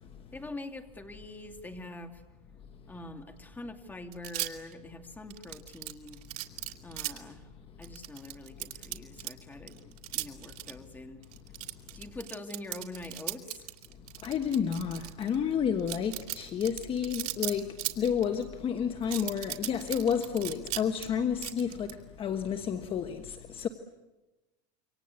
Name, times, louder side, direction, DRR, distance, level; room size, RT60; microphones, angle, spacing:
voice 1, 0.3-2.2 2.9-6.2 6.8-7.5 7.8-11.2 12.0-13.7, left 2 dB, 10° left, 2.5 m, -44 dB
sound 1, 4.1-4.7 5.3-7.2 7.8-9.3 9.7-10.7 11.2-15.4 15.8-18.4 19.0-21.0 21.4-21.9, right 17 dB, 90° right, 3.0 m, -37 dB
voice 2, 14.2-23.7, left 7 dB, 30° left, 1.3 m, -30 dB
27.5 x 25.0 x 8.4 m
supercardioid pair, 150°, 19 cm